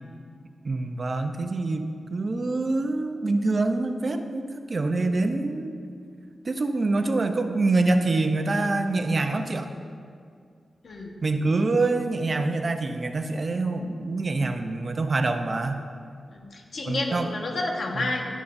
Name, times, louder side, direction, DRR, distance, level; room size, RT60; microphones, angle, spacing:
voice 1, 0.6-5.7 6.5-9.7 11.2-15.8 16.8-17.3, right 2 dB, 45° right, 6 dB, 0.6 m, -25 dB
voice 2, 16.3-18.3, left 2 dB, 65° left, 1 dB, 1.3 m, -30 dB
11.0 x 11.0 x 2.6 m, 2.2 s
wide cardioid pair, 100°, 0 cm